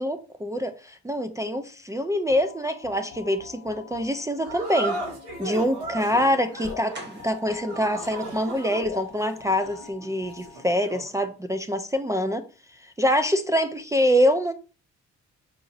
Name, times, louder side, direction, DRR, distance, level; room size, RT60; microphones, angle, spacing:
voice 1, 0.0-5.0 5.4-12.4 12.8-14.5, equal, 10° right, 0.3 m, -25 dB
sound 1, 2.3-11.0, left 7 dB, 60° left, 0.8 m, -44 dB
sound 2, 4.4-11.2, right 2 dB, 85° right, 1.7 m, -36 dB
sound 3, 6.9-8.7 9.1-9.2 9.5-9.7 9.9-10.0, right 2 dB, 35° right, 1.1 m, -45 dB
5.0 x 2.9 x 2.5 m
cardioid pair, 90°, 30 cm